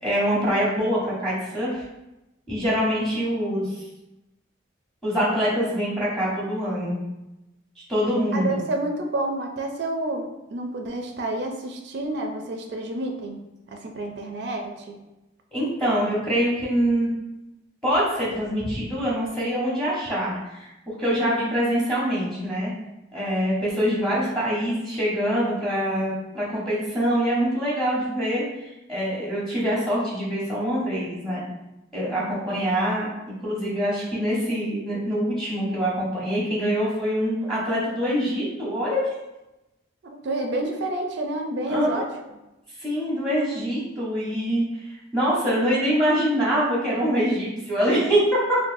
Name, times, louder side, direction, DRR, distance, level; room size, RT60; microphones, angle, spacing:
voice 1, 0.0-1.8 2.5-3.8 5.0-7.0 7.9-8.6 15.5-17.1 17.8-22.7 23.1-31.4 31.9-33.1 33.4-39.0 41.7-42.0 42.8-44.8 45.1-48.6, equal, 5° left, -7 dB, 0.9 m, -24 dB
voice 2, 8.3-13.4 13.7-15.0 40.2-42.1, right 2 dB, 60° right, 2 dB, 0.4 m, -29 dB
3.9 x 2.2 x 2.6 m, 0.96 s
head